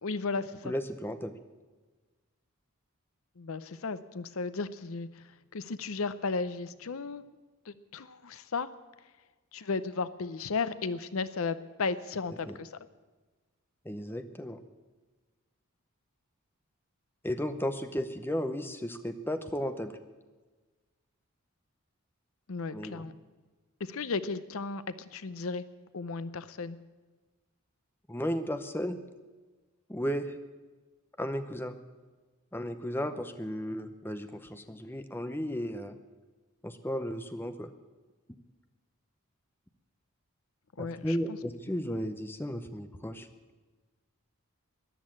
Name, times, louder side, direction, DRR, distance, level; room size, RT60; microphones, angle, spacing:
voice 1, 0.0-0.7 3.4-5.2 5.5-7.2 7.7-8.7 9.5-12.8 22.5-23.1 23.8-25.6 25.9-26.8 40.8-41.4, left 4 dB, 70° left, 14 dB, 0.7 m, -34 dB
voice 2, 0.6-1.3 12.5-12.6 13.8-14.6 17.2-19.9 22.7-23.1 28.1-29.0 29.9-30.4 31.2-31.8 32.5-36.0 36.6-37.7 40.8-43.3, equal, 10° left, 9 dB, 0.7 m, -34 dB
14.0 x 10.5 x 8.7 m, 1.3 s
head